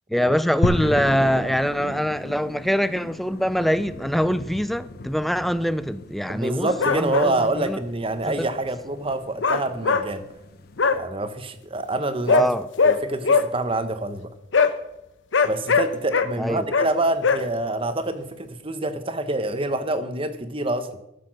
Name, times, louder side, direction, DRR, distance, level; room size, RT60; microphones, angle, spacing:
voice 1, 0.1-7.8 8.4-8.5 12.3-12.7 16.4-16.7, equal, ahead, 0.4 m, -24 dB
sound 1, 0.6-10.9, left 2 dB, 55° left, 0.8 m, -34 dB
voice 2, 6.3-10.2 10.9-12.5 12.8-14.3 15.4-20.9, right 2 dB, 30° right, 0.9 m, -26 dB
sound 2, 6.7-7.3 9.4-10.0 10.8-11.0 12.3-12.5 12.8-13.0 13.2-13.4 14.5-14.7 15.3-16.3 16.7-16.9 17.2-17.4, left 4 dB, 80° left, 0.8 m, -19 dB
14.5 x 6.8 x 6.3 m
head